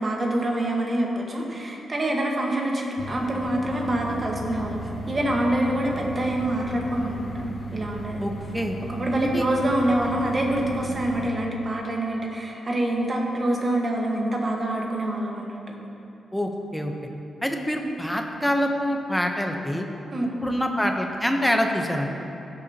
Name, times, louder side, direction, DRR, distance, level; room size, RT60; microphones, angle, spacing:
voice 1, 0.0-4.8 5.1-7.3 7.7-8.2 8.9-15.6 20.1-20.3, right 1 dB, 30° right, -1 dB, 1.4 m, -26 dB
sound 1, 3.0-11.3, right 2 dB, 35° left, 0.6 m, -36 dB
voice 2, 8.2-8.8 9.2-9.4 16.3-16.9 17.4-19.9 20.4-22.1, equal, 5° left, 3 dB, 0.8 m, -25 dB
16.0 x 6.8 x 2.9 m, 2.9 s
wide cardioid pair, 120°, 0 cm